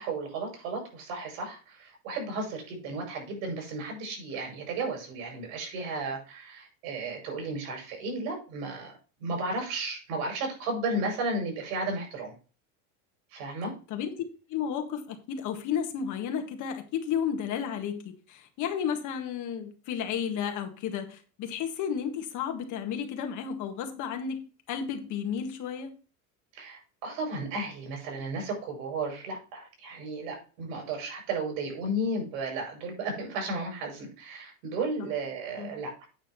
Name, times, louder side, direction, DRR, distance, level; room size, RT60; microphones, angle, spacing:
voice 1, 0.0-8.9 9.2-12.3 13.3-13.7 26.5-35.9, right 2 dB, 70° right, 2 dB, 5.8 m, -34 dB
voice 2, 14.5-24.4 24.7-25.9 35.6-35.7, left 8 dB, 45° left, 5 dB, 1.9 m, -32 dB
9.0 x 5.0 x 6.0 m, 0.36 s
supercardioid pair, 130°, 40 cm